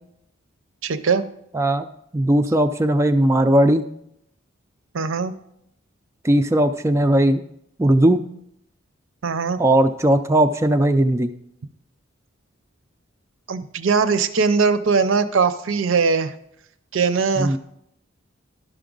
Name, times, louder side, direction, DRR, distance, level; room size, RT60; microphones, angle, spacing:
voice 1, 0.8-1.2 4.9-5.3 9.2-9.6 13.5-16.3 16.9-17.6, right 5 dB, 75° right, 12 dB, 0.6 m, -20 dB
voice 2, 1.5-1.9 2.1-3.9 6.2-7.4 7.8-8.2 9.6-11.3 17.4-17.6, right 1 dB, 15° right, 8 dB, 0.3 m, -18 dB
12.0 x 6.0 x 3.8 m, 0.76 s
head